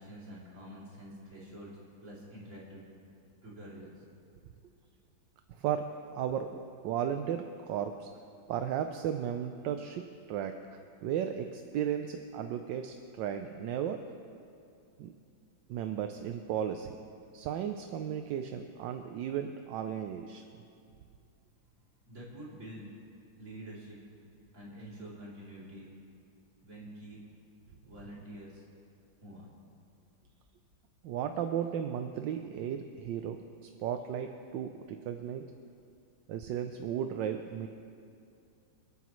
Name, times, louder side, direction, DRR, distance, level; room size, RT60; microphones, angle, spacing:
voice 1, 0.0-1.7 2.0-2.8 3.4-4.0 22.1-22.9 23.4-24.0 24.5-25.9 26.6-27.2 27.8-28.7 29.2-29.5, right 1 dB, 35° right, -7 dB, 3.4 m, -47 dB
voice 2, 5.6-8.1 8.5-10.5 11.0-14.0 15.0-15.1 15.7-16.9 17.3-20.5 31.0-35.4 36.3-37.7, right 9 dB, 70° right, 6 dB, 1.2 m, -35 dB
27.5 x 9.4 x 3.1 m, 2.5 s
omnidirectional pair, 2.3 m